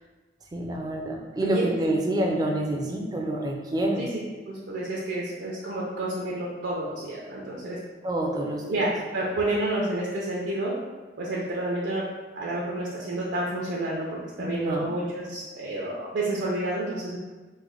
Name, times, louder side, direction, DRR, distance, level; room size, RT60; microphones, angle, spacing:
voice 1, 0.5-4.1 8.0-8.8 14.4-14.9, right 1 dB, 20° right, 0 dB, 0.3 m, -27 dB
voice 2, 1.4-1.9 4.0-4.1 4.5-7.8 8.7-10.7 11.2-12.0 12.3-17.2, right 1 dB, 85° right, -5 dB, 0.5 m, -30 dB
3.1 x 2.1 x 3.7 m, 1.3 s
head